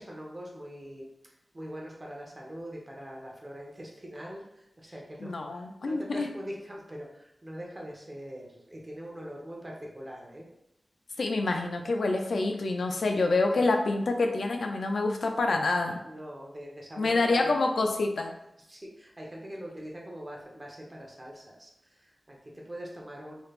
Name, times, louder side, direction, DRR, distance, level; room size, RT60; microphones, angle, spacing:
voice 1, 0.0-10.5 13.5-13.7 14.8-14.9 15.7-17.6 18.3-23.4, equal, 30° right, -2 dB, 0.9 m, -43 dB
voice 2, 5.2-6.3 11.2-16.0 17.0-18.3, left 3 dB, 85° left, 3 dB, 0.4 m, -27 dB
3.2 x 3.1 x 2.4 m, 0.80 s
wide cardioid pair, 55°, 0 cm